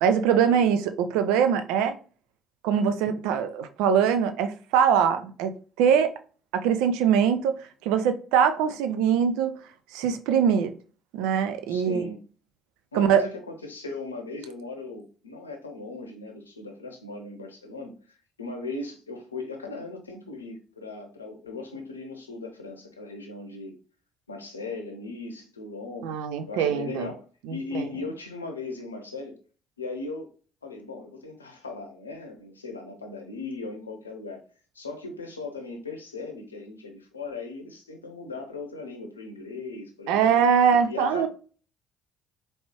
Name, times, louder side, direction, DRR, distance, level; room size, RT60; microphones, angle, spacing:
voice 1, 0.0-0.8 1.1-1.9 2.6-6.1 6.5-7.5 7.8-9.5 9.9-10.7 11.1-12.1 12.9-13.2 26.0-27.1 27.5-27.8 40.1-41.3, right 7 dB, 70° right, 0.5 m, -22 dB
voice 2, 11.7-12.2 12.9-23.8 24.3-26.1 26.5-29.4 29.8-30.3 30.6-34.4 34.7-40.5 40.9-41.3, left 3 dB, 90° left, 0.7 m, -38 dB
4.3 x 3.1 x 2.9 m
figure-of-eight pair, 50°, 0 cm